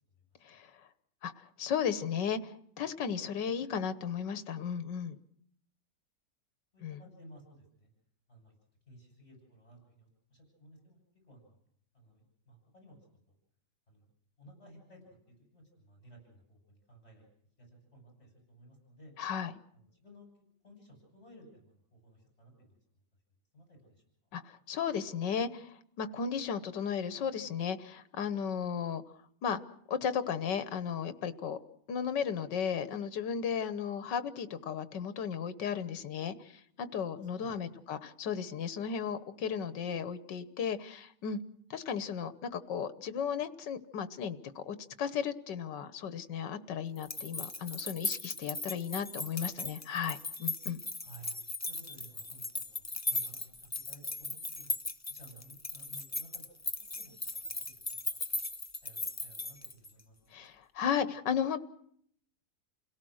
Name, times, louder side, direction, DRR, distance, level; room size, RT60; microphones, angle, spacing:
voice 1, 1.2-5.2 6.8-7.0 19.2-19.5 24.3-29.0 29.4-29.6 29.9-31.6 31.9-41.4 41.7-50.8 60.3-61.6, left 7 dB, 90° left, 13 dB, 1.8 m, -35 dB
voice 2, 6.7-7.9 8.3-8.5 8.9-11.6 11.9-13.0 13.3-13.4 13.9-14.1 14.4-15.1 15.5-17.3 17.6-19.1 19.7-22.8 23.5-24.0 37.2-37.8 51.0-51.3 51.7-54.7 55.1-57.6 57.9-58.4 58.8-60.5, right 1 dB, 35° left, 1 dB, 8.3 m, -57 dB
sound 1, 47.0-60.0, left 2 dB, 20° left, 0.5 m, -38 dB
29.5 x 17.5 x 6.4 m, 0.66 s
omnidirectional pair, 1.8 m